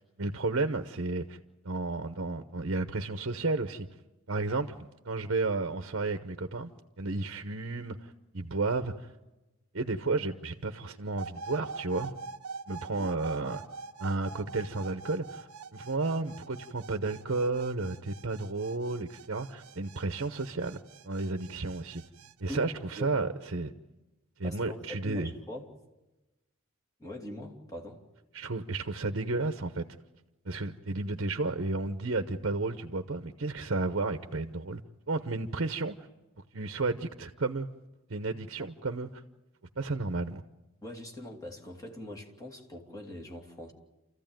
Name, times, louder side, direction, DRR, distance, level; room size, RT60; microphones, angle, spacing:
voice 1, 0.2-1.4 1.6-3.9 4.3-6.7 7.0-9.1 9.7-12.1 12.7-13.6 14.0-22.0 22.4-23.7 24.4-25.3 28.3-29.8 30.4-34.8 35.1-35.9 36.5-37.7 38.1-39.1 39.8-40.4, right 3 dB, 60° right, 1.0 m, -32 dB
sound 1, 11.2-22.3, right 4 dB, 85° right, 0.7 m, -45 dB
voice 2, 22.5-23.2 24.4-25.7 27.0-28.0 38.6-38.7 40.8-43.7, left 1 dB, 15° left, 2.8 m, -42 dB
28.5 x 15.0 x 9.1 m
head